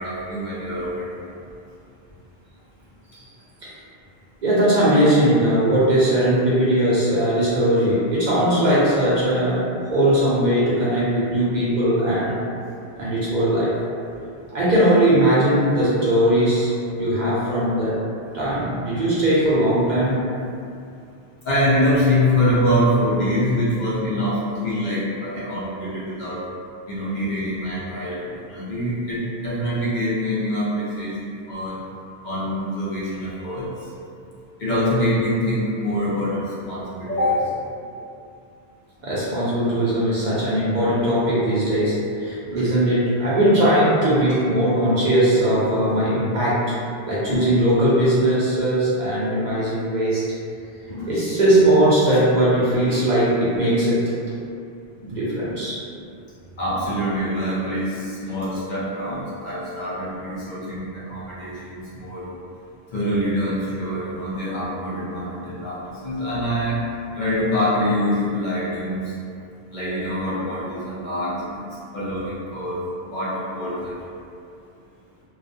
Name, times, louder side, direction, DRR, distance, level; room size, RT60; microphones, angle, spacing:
voice 1, 0.0-1.3 21.4-26.4 26.9-31.8 32.2-33.9 34.6-37.4 42.4-42.7 47.3-47.5 50.9-51.1 55.0-55.1 56.6-62.3 62.9-65.8 66.0-66.8 67.2-69.1 69.7-71.6 71.9-72.8 73.1-74.0, equal, 55° left, -9 dB, 0.6 m, -24 dB
voice 2, 4.4-12.4 13.0-13.7 14.5-18.0 18.3-20.2 39.0-46.7 47.0-50.2 51.1-54.4 55.1-55.8, right 1 dB, 55° right, -9 dB, 0.6 m, -19 dB
2.3 x 2.1 x 2.5 m, 2.5 s
omnidirectional pair, 1.0 m